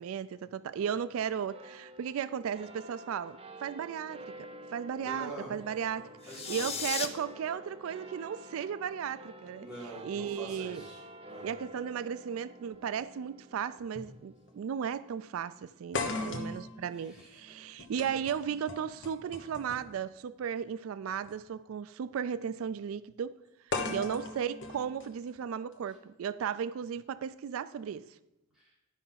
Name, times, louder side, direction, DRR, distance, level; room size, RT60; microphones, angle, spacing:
voice 1, 0.0-4.3 4.7-9.7 10.0-10.8 11.4-23.3 23.7-28.1, right 8 dB, 90° right, 0.3 m, -35 dB
sound 1, 1.5-18.2, right 1 dB, 30° right, 0.8 m, -51 dB
voice 2, 5.0-5.5 5.9-6.7 9.6-11.5 15.9-16.3 17.0-17.3 18.0-18.2 23.7-23.9 28.6-28.7, right 1 dB, 5° right, 3.9 m, -45 dB
sound 2, 6.2-7.1, left 7 dB, 30° left, 0.7 m, -35 dB
metallic can impact, 12.7-12.8 13.9-14.1 14.5-14.6 15.9-20.0 21.2-21.3 23.7-25.7, left 3 dB, 60° left, 1.2 m, -38 dB
11.5 x 5.5 x 5.7 m
head